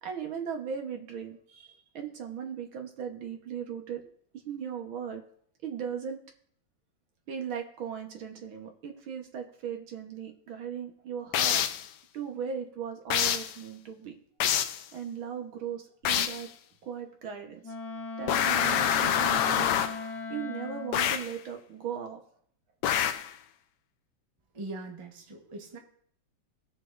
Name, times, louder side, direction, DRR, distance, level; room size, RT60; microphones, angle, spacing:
voice 1, 0.0-4.0 4.5-5.2 5.6-6.2 7.3-11.6 12.1-14.1 14.9-16.5 16.8-17.7 18.2-19.8 20.3-22.2, right 7 dB, 90° right, 4 dB, 2.1 m, -37 dB
sound 1, 11.3-11.9 13.1-13.6 14.4-14.8 16.1-16.5 18.3-20.0 20.9-21.4 22.8-23.3, left 9 dB, 70° left, 1.1 m, -26 dB
Wind instrument woodwind instrument, 17.6-21.1, left 3 dB, 55° left, 1.6 m, -38 dB
voice 2, 24.5-25.8, right 2 dB, 20° right, 1 dB, 1.0 m, -41 dB
19.0 x 6.5 x 2.6 m, 0.63 s
omnidirectional pair, 2.1 m